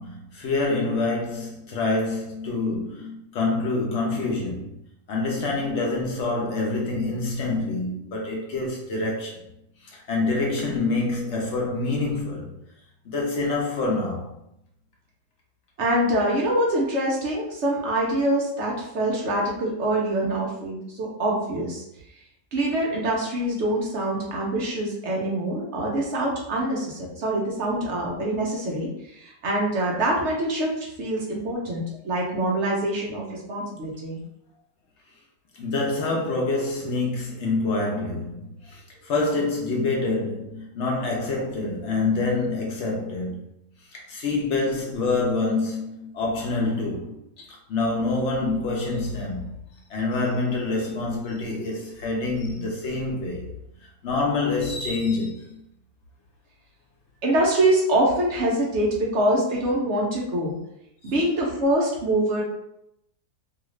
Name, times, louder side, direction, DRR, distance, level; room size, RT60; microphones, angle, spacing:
voice 1, 0.0-4.7 5.1-9.4 9.8-12.5 13.0-14.4 35.6-43.4 43.9-49.5 49.9-53.5 54.0-55.6, left 3 dB, 60° left, 0.7 m, -26 dB
voice 2, 15.8-21.8 22.5-34.2 57.2-60.6 61.0-62.4, right 1 dB, 65° right, 0.7 m, -25 dB
2.8 x 2.4 x 3.1 m
omnidirectional pair, 1.8 m